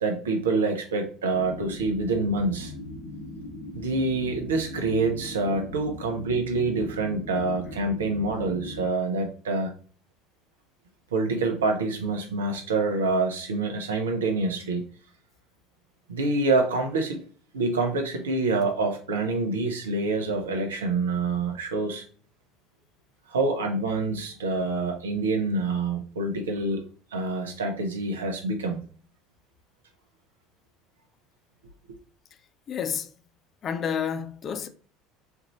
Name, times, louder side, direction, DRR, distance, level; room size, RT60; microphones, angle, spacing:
voice 1, 0.0-2.7 3.7-9.7 11.1-14.9 16.1-17.2 17.5-22.0 23.3-26.8 27.1-28.8, right 3 dB, 80° right, 0.8 m, -26 dB
sound 1, 1.3-8.8, left 1 dB, 80° left, 2.0 m, -39 dB
voice 2, 32.7-33.1 33.6-34.7, left 7 dB, 40° left, 0.4 m, -29 dB
4.5 x 2.6 x 2.9 m
hypercardioid pair, 70°, 0 cm